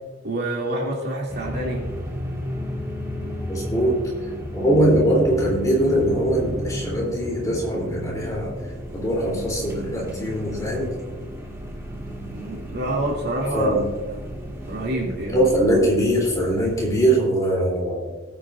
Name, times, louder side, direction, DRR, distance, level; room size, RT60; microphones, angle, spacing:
voice 1, 0.2-1.8 12.3-13.7 14.1-14.2 14.7-15.5, right 1 dB, 50° right, -2 dB, 2.6 m, -27 dB
sound 1, 1.3-17.0, equal, 15° right, 1.8 m, -33 dB
voice 2, 3.5-4.0 4.5-8.5 8.9-10.9 13.5-13.9 15.3-18.2, right 1 dB, 15° left, -3 dB, 3.3 m, -21 dB
20.0 x 9.0 x 2.5 m, 1.2 s
head